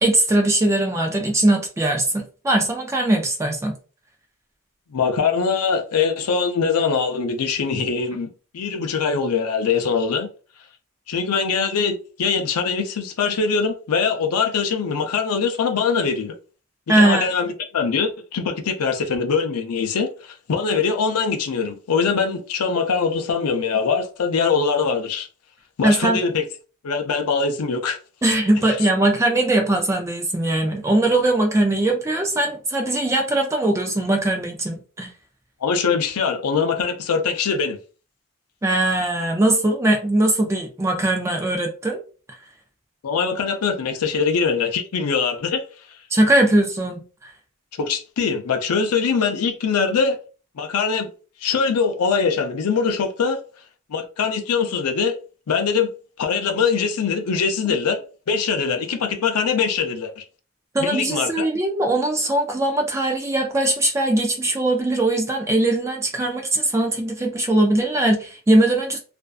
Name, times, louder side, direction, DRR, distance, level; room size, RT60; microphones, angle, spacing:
voice 1, 0.0-3.8 16.9-17.3 25.8-26.2 28.2-35.1 38.6-42.0 46.1-47.3 60.7-69.0, right 1 dB, 15° right, 0.3 m, -20 dB
voice 2, 4.9-10.3 11.1-16.3 16.9-25.3 25.8-26.4 26.8-28.0 28.6-28.8 35.6-37.8 43.0-45.6 47.8-50.2 50.6-51.1 51.4-53.4 53.9-55.2 55.5-55.9 56.2-58.0 58.3-60.2 60.8-61.5, left 5 dB, 85° left, 0.5 m, -22 dB
2.5 x 2.2 x 2.3 m
head